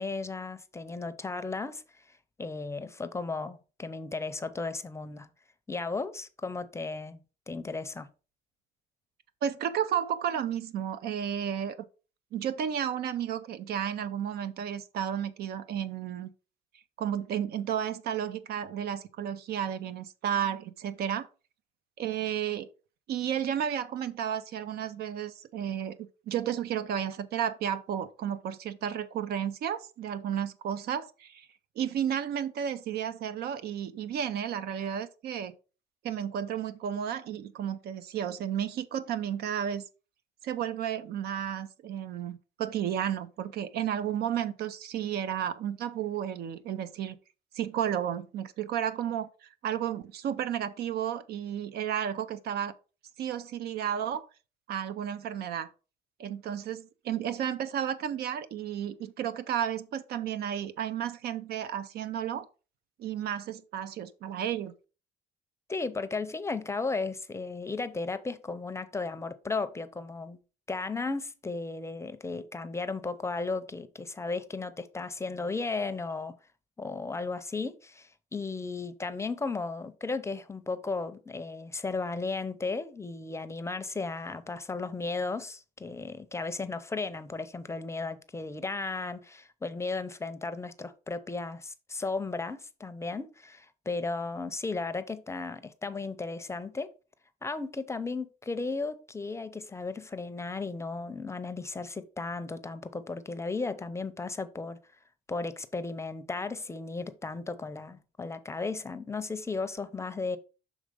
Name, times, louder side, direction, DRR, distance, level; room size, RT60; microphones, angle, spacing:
voice 1, 0.0-5.3 5.7-8.1 65.7-70.4 70.7-76.3 76.8-96.9 97.4-104.8 105.3-110.4, left 3 dB, 15° left, 0.6 m, -35 dB
voice 2, 9.4-11.8 12.3-16.3 17.0-21.3 22.0-22.7 23.1-31.5 31.8-35.5 36.0-39.8 40.4-47.2 47.5-52.7 53.2-54.3 54.7-55.7 56.2-62.5 63.0-64.7, right 9 dB, 70° right, 0.7 m, -32 dB
6.5 x 3.6 x 5.0 m
cardioid pair, 110°, 17 cm